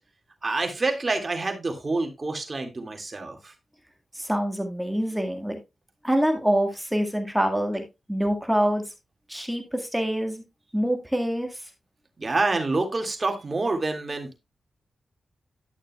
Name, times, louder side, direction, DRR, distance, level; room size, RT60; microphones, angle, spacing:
voice 1, 0.4-3.5 12.2-14.4, right 3 dB, 45° right, 4 dB, 2.0 m, -27 dB
voice 2, 4.1-5.6 6.0-8.8 9.3-10.4 10.7-11.5, equal, 5° right, 4 dB, 1.7 m, -25 dB
11.5 x 6.5 x 2.3 m, 0.22 s
cardioid pair, 50°, 0 cm